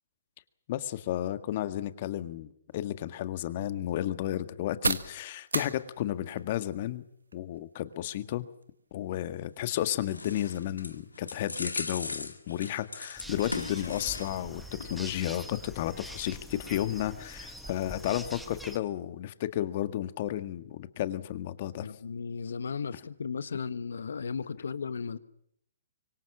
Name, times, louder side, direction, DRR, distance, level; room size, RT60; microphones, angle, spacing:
voice 1, 0.7-7.0 7.3-8.5 8.9-21.9, left 12 dB, 45° left, 11 dB, 1.8 m, -33 dB
sound 1, 2.7-20.3, right 3 dB, 85° right, 1.5 m, -43 dB
sound 2, 9.6-14.5 14.8-15.0, left 3 dB, 90° left, 2.0 m, -39 dB
sound 3, 13.2-18.8, equal, ahead, 1.9 m, -44 dB
voice 2, 21.8-25.2, left 5 dB, 70° left, 14 dB, 1.4 m, -35 dB
25.0 x 24.0 x 7.3 m, 0.72 s
figure-of-eight pair, 130°, 0 cm